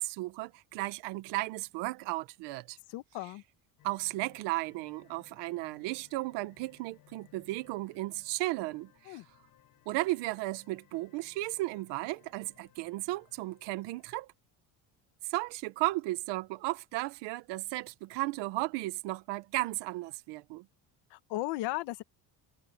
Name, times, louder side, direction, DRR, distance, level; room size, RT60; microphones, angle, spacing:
voice 1, 0.0-2.8 3.8-9.2 9.9-14.3 15.2-20.6, right 19 dB, 85° right, 1.3 m, -35 dB
voice 2, 2.9-3.4 9.1-9.2 21.1-22.0, left 18 dB, 80° left, 1.6 m, -36 dB
sound 1, 3.8-14.3, left 13 dB, 55° left, 7.8 m, -64 dB
cardioid pair, 150°, 40 cm